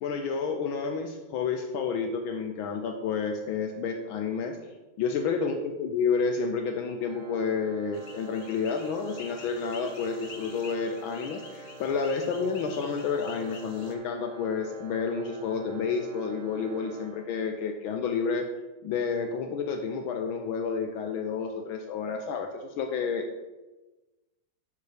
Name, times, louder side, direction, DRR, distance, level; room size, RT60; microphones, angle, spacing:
voice 1, 0.0-4.6 5.0-18.5 18.8-23.2, left 5 dB, 75° left, 4 dB, 1.4 m, -30 dB
Organ, 7.0-17.8, right 2 dB, 75° right, 1.8 m, -47 dB
sound 1, 7.9-13.9, left 4 dB, 55° left, 1.1 m, -48 dB
6.7 x 6.6 x 5.0 m, 1.1 s
omnidirectional pair, 2.3 m